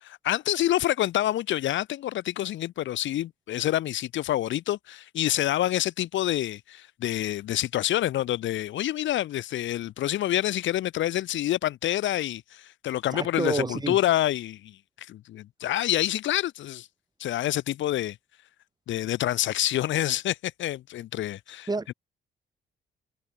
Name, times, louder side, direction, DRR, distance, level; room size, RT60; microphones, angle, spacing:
voice 1, 0.0-16.9 17.2-18.2 18.9-21.9, left 13 dB, 70° left, 0.8 m, -27 dB
voice 2, 13.1-14.0 21.7-21.9, right 3 dB, 20° right, 3.4 m, -29 dB
cardioid pair, 90°, 20 cm